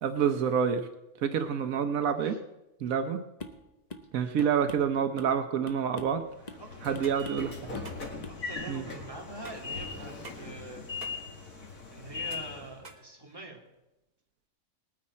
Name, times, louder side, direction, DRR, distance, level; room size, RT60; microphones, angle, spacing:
voice 1, 0.0-0.9 1.2-2.4 2.8-3.2 4.1-6.2 6.8-7.8 8.7-8.9, right 7 dB, 85° right, 8 dB, 1.3 m, -28 dB
sound 1, 3.4-3.6 3.9-4.1 4.4-5.4 5.7-6.2 6.5-6.7 6.9-7.5 7.7-7.9 8.2-8.4, left 2 dB, 35° left, 1.0 m, -44 dB
Train / Sliding door, 6.3-12.8, left 4 dB, 90° left, 2.5 m, -40 dB
voice 2, 6.6-7.2 8.3-10.9 11.9-13.6, right 2 dB, 15° right, -1 dB, 2.3 m, -45 dB
sound 2, 7.0-13.7, right 3 dB, 35° right, 1.3 m, -51 dB
20.0 x 9.5 x 4.3 m, 0.96 s
omnidirectional pair, 1.4 m